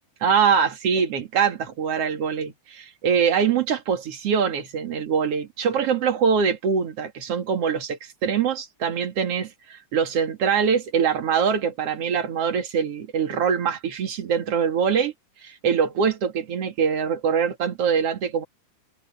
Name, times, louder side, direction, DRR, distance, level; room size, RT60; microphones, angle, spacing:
voice 1, 0.2-15.1 15.4-18.4, right 7 dB, 50° right, 2.8 m, -23 dB
omnidirectional pair, 3.9 m